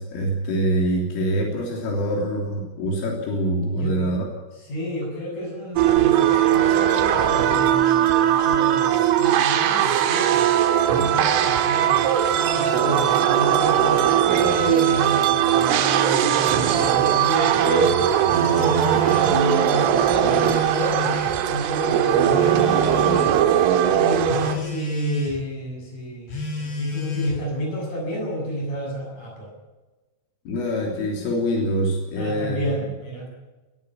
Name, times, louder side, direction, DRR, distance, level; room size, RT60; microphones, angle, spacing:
voice 1, 0.0-4.3 30.5-32.9, right 1 dB, 80° left, 0 dB, 5.8 m, -25 dB
voice 2, 4.7-10.5 10.8-12.0 12.5-18.0 18.3-23.2 23.9-29.5 32.2-33.3, equal, 40° left, -1 dB, 9.1 m, -30 dB
sound 1, 5.8-24.6, right 10 dB, 80° right, 3.8 m, -19 dB
Telephone, 12.3-13.4 14.1-15.3 16.3-17.3 18.3-19.4 20.3-21.4 22.3-23.4 24.3-25.4 26.3-27.4, equal, 65° left, 8.5 m, -31 dB
20.0 x 15.0 x 9.6 m, 1.2 s
omnidirectional pair, 5.8 m